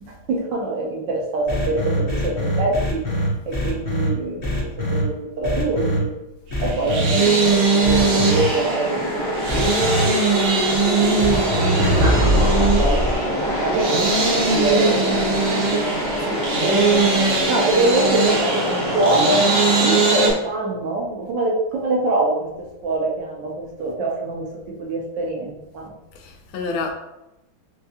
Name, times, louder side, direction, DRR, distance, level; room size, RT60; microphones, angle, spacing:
voice 1, 0.0-3.0 3.5-6.1 6.6-9.5 10.0-10.5 12.0-14.1 14.3-15.2 16.6-19.5 19.8-22.5 22.8-25.9, right 2 dB, 70° right, -2 dB, 1.3 m, -24 dB
sound 1, 1.5-4.1 4.4-5.0 5.4-6.0 6.5-7.1 7.8-8.4 9.5-10.0 11.2-13.1, equal, 45° left, 0.7 m, -22 dB
sound 2, 6.6-20.3, right 4 dB, 90° right, 1.6 m, -21 dB
sound 3, 7.1-20.3, equal, 65° left, 1.7 m, -25 dB
voice 2, 16.2-16.5 26.1-26.9, left 3 dB, 80° left, 3 dB, 1.4 m, -29 dB
4.5 x 2.2 x 2.8 m, 0.93 s
omnidirectional pair, 2.3 m